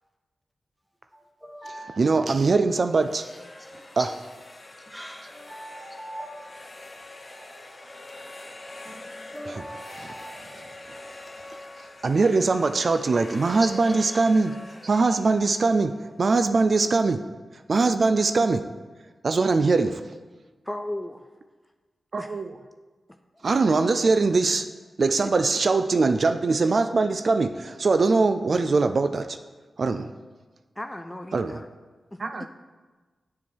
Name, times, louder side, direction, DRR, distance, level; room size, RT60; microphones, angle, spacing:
voice 1, 1.1-2.6 3.1-4.2 4.9-6.8 7.2-7.9 8.5-10.5 12.2-12.4 12.8-13.0 13.3-14.6, equal, 5° right, 4 dB, 1.1 m, -42 dB
voice 2, 2.0-3.3 4.0-4.1 12.0-14.6 14.8-17.2 17.7-18.7 19.2-20.0 22.1-22.5 23.4-24.7 25.0-29.4 29.8-30.1 31.3-31.5 32.2-32.5, right 3 dB, 60° right, 9 dB, 0.3 m, -22 dB
sound 1, 2.7-16.6, left 2 dB, 40° left, 0.8 m, -44 dB
voice 3, 20.7-21.3 22.2-22.4 23.3-23.4 25.2-25.3 30.8-31.7 32.1-32.5, left 1 dB, 15° left, 7 dB, 0.5 m, -36 dB
7.2 x 6.5 x 4.4 m, 1.3 s
cardioid pair, 40°, 0 cm